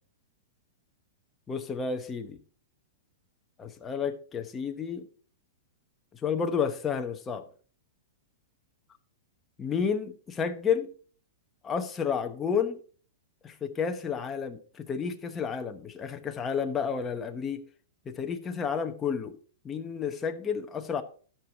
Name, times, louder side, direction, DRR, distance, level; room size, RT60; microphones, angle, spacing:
voice 1, 1.5-2.4 3.6-5.1 6.1-7.5 9.6-10.9 11.6-12.8 13.4-17.6 18.0-19.3 19.6-21.0, left 6 dB, 10° left, 0.9 m, -31 dB
13.0 x 6.0 x 4.8 m
supercardioid pair, 175°, 0 cm